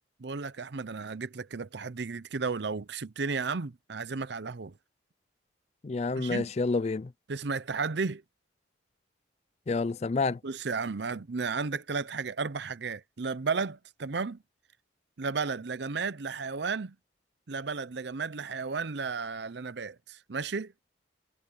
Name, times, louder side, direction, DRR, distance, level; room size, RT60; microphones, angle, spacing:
voice 1, 0.2-4.7 6.2-6.5 7.3-8.2 10.4-14.4 15.2-17.0 17.5-20.7, right 4 dB, 65° right, 0.6 m, -33 dB
voice 2, 5.8-7.1 9.7-10.4, left 3 dB, 35° left, 0.4 m, -28 dB
head